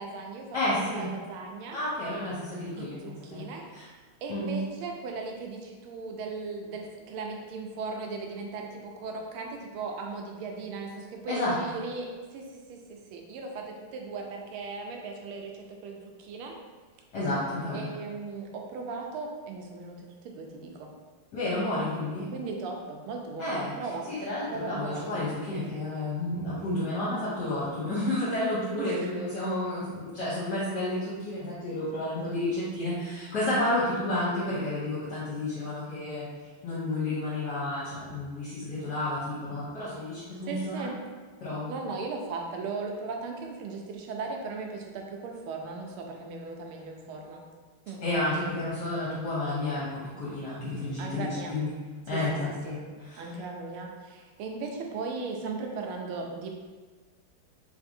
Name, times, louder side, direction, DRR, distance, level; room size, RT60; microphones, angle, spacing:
voice 1, 0.0-1.8 2.8-3.7 4.2-16.6 17.7-20.9 22.3-24.0 24.5-25.1 28.8-29.1 40.5-41.0 41.7-47.4 47.9-48.0 48.3-48.5 51.0-51.6 52.1-52.4 52.7-52.8 53.2-56.5, right 4 dB, 85° right, 2 dB, 1.5 m, -37 dB
voice 2, 0.5-1.1 1.7-3.4 3.7-3.8 4.3-4.5 11.3-11.5 17.1-17.9 21.3-22.3 23.4-23.7 24.1-36.3 36.6-40.9 41.4-41.7 48.0-51.7 52.1-52.8 53.1-53.3, left 1 dB, 65° left, -9 dB, 1.3 m, -31 dB
3.6 x 3.3 x 2.6 m, 1.4 s
omnidirectional pair, 2.3 m